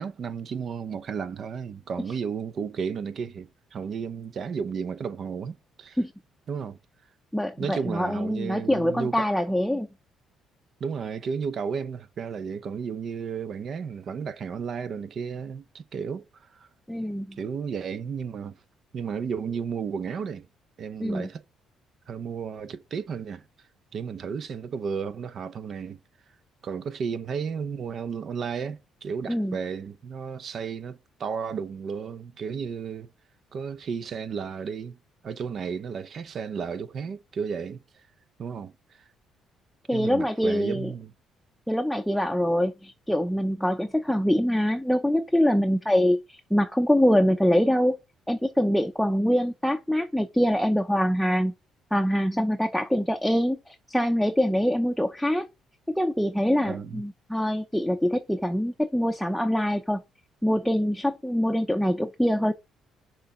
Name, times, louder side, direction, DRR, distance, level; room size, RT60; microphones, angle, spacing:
voice 1, 0.0-6.0 6.5-6.8 7.6-9.4 10.8-16.7 17.4-18.6 18.9-20.5 20.8-21.4 22.1-23.4 23.9-26.0 26.6-33.1 33.5-35.0 35.2-38.0 38.4-38.7 39.9-41.1 56.6-57.0, right 6 dB, 50° right, 0.8 m, -33 dB
voice 2, 7.3-9.9 16.9-17.4 21.0-21.3 29.3-29.6 39.9-40.9 41.7-48.0 48.3-51.5 51.9-55.5 55.9-60.0 60.4-62.5, equal, ahead, 0.7 m, -24 dB
6.4 x 4.0 x 5.8 m
cardioid pair, 95°, 0 cm